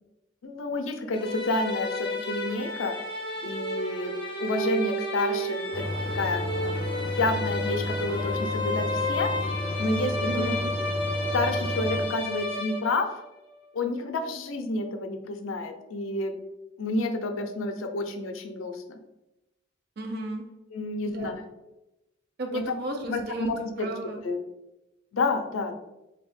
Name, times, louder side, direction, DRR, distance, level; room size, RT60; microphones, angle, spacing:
voice 1, 0.4-2.9 3.4-4.1 4.4-5.8 6.1-6.4 7.0-9.3 9.8-10.6 11.3-13.1 13.7-16.3 16.8-19.0 20.7-21.4 22.5-22.6 23.1-23.9 24.2-24.4 25.1-25.8, left 2 dB, 90° left, 6 dB, 0.5 m, -29 dB
sound 1, 1.1-13.2, equal, 25° left, 0.6 m, -31 dB
Washing mashine centrifugue, 5.7-12.1, left 1 dB, 10° right, 1.3 m, -32 dB
voice 2, 10.2-10.7 20.0-20.5 21.1-21.4 22.4-24.2, right 1 dB, 55° right, 3 dB, 0.4 m, -34 dB
2.7 x 2.2 x 4.1 m, 0.95 s
head